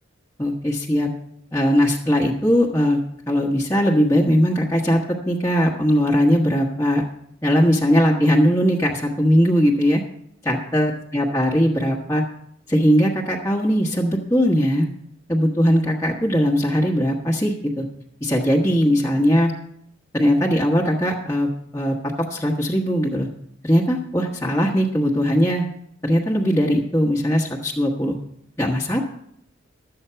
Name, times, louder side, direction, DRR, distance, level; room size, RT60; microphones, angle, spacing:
voice 1, 0.4-1.1 1.5-3.0 3.3-7.0 7.4-10.0 10.4-12.2 12.7-14.9 15.3-17.8 18.2-19.5 20.1-23.3 23.6-25.7 26.0-28.2 28.6-29.0, equal, 15° left, -3 dB, 1.1 m, -19 dB
12.0 x 8.0 x 5.6 m, 0.73 s
head